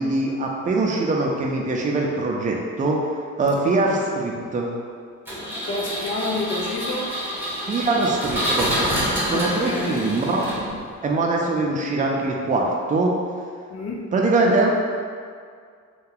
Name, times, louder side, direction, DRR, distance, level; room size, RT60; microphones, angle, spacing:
voice 1, 0.0-3.0 3.4-4.7 7.7-8.7 9.3-10.4 11.0-13.1 14.1-14.7, right 2 dB, 25° right, -1 dB, 0.5 m, -22 dB
Engine, 5.3-10.9, equal, 5° right, 0.9 m, -27 dB
voice 2, 5.6-7.1 9.3-10.0 13.7-14.1, left 2 dB, 55° left, -2 dB, 0.6 m, -29 dB
2.7 x 2.3 x 3.8 m, 2.1 s
cardioid pair, 90°, 30 cm